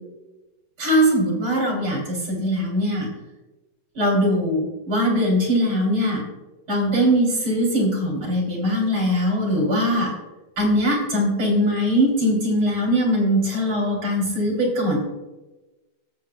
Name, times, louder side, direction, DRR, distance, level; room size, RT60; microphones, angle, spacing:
voice 1, 0.8-3.1 4.0-6.2 6.7-10.1 10.6-15.0, equal, 90° right, -2 dB, 3.7 m, -21 dB
17.0 x 7.6 x 2.2 m, 1.1 s
omnidirectional pair, 2.0 m